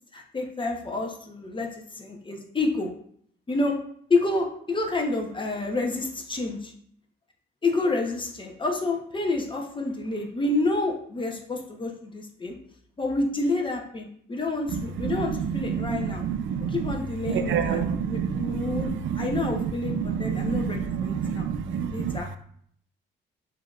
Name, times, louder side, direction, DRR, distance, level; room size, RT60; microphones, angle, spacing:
voice 1, 0.1-2.9 3.5-3.8 4.1-6.7 7.6-12.6 13.0-16.2 16.7-21.5 21.9-22.4, left 2 dB, 25° left, 1 dB, 0.9 m, -29 dB
voice 2, 14.7-16.9 17.3-19.3 19.5-22.2, right 7 dB, 75° right, 9 dB, 0.4 m, -28 dB
7.2 x 2.8 x 2.4 m, 0.64 s
cardioid pair, 90°, 20 cm